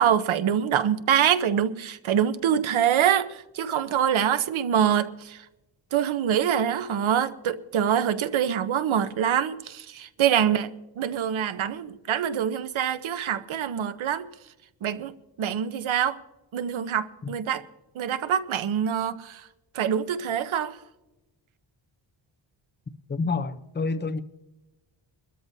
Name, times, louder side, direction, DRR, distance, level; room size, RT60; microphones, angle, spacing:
voice 1, 0.0-5.4 5.9-14.3 14.8-16.2 16.5-17.6 18.0-19.4 19.7-20.8, right 9 dB, 85° right, 0.9 m, -25 dB
voice 2, 23.1-24.2, left 4 dB, 25° left, 0.6 m, -28 dB
23.0 x 13.5 x 2.7 m
wide cardioid pair, 150°, 46 cm